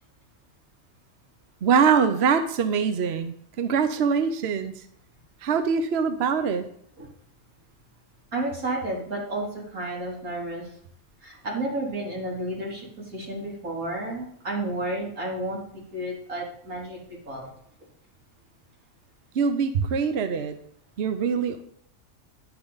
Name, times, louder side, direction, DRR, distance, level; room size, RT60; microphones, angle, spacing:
voice 1, 1.6-4.8 5.4-6.7 19.3-20.5 21.0-21.6, right 6 dB, 55° right, 9 dB, 1.0 m, -23 dB
voice 2, 8.3-10.7 11.2-15.6 15.9-17.5, right 1 dB, 85° right, -3 dB, 3.7 m, -31 dB
11.0 x 10.0 x 4.0 m, 0.69 s
omnidirectional pair, 1.5 m